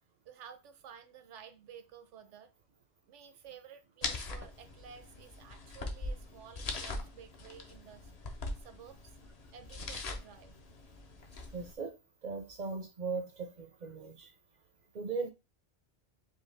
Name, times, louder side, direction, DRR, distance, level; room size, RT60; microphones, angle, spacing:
voice 1, 0.2-2.5 3.1-8.1 8.6-9.2 9.5-10.6, right 8 dB, 90° right, 1.0 m, -53 dB
sound 1, 4.0-11.7, left 2 dB, 40° left, 0.7 m, -42 dB
voice 2, 11.5-12.0 12.2-14.3 14.9-15.3, right 4 dB, 55° right, 0.5 m, -38 dB
4.8 x 2.9 x 3.3 m
omnidirectional pair, 1.2 m